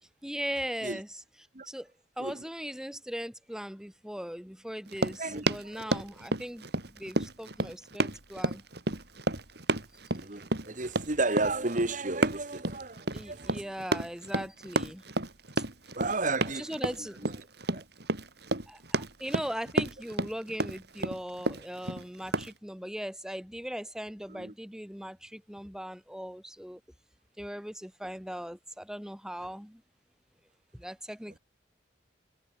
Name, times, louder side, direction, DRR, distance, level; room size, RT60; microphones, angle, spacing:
voice 1, 0.2-1.2 1.7-1.9 2.2-6.7 6.9-8.6 13.1-15.0 15.6-15.7 16.6-17.3 18.7-26.8 27.4-29.8 30.7-31.4, equal, 5° right, 3.5 m, -39 dB
Run, 4.9-22.5, right 2 dB, 60° right, 3.8 m, -31 dB
voice 2, 5.2-6.0 10.1-13.6 15.9-16.7 17.2-17.3 17.7-17.8 24.3-24.5, right 2 dB, 45° right, 1.9 m, -33 dB
head